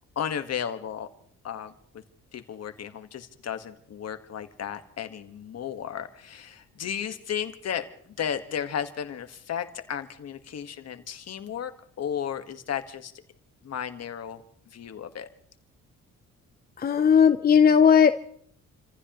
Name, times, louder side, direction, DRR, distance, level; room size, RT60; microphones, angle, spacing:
voice 1, 0.1-1.1 1.4-1.7 2.3-11.7 12.0-13.1 13.6-15.3, left 8 dB, 55° left, 8 dB, 1.5 m, -34 dB
voice 2, 16.8-18.1, left 7 dB, 30° left, 8 dB, 0.7 m, -17 dB
29.5 x 15.0 x 3.0 m, 0.64 s
cardioid pair, 90°, 30 cm